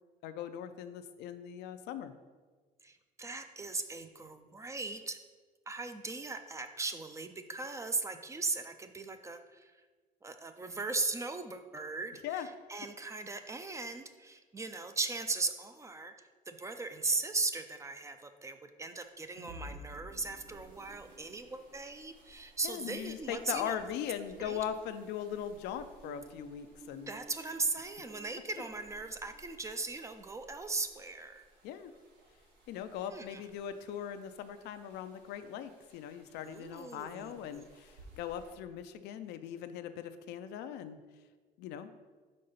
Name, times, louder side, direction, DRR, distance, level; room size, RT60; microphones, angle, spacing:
voice 1, 0.2-2.1 12.2-12.5 22.6-27.1 31.6-31.9 32.7-41.0 41.6-41.9, left 9 dB, 85° left, 10 dB, 0.4 m, -40 dB
voice 2, 2.8-5.2 5.7-9.8 10.2-23.8 24.4-24.6 27.1-31.4 33.0-33.4 36.4-37.7, right 3 dB, 15° right, 8 dB, 0.4 m, -38 dB
sound 1, 19.0-29.5, right 2 dB, 55° right, 1.0 m, -54 dB
sound 2, 20.5-38.5, right 1 dB, 80° right, 1.5 m, -62 dB
5.2 x 3.8 x 5.6 m, 1.4 s
cardioid pair, 110°, 17 cm